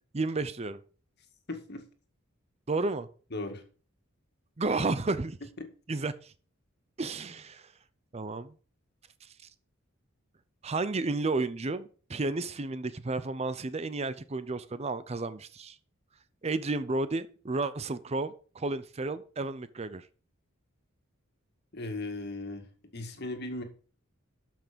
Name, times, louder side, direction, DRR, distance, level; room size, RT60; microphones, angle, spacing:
voice 1, 0.1-0.8 2.7-3.1 4.6-5.4 5.9-6.3 7.0-7.7 8.1-8.5 10.6-15.8 16.4-20.0, right 3 dB, 30° right, 0.6 m, -32 dB
voice 2, 1.5-1.8 3.3-3.6 21.7-22.6 22.9-23.6, left 2 dB, 50° left, 1.9 m, -37 dB
12.5 x 6.0 x 5.1 m
head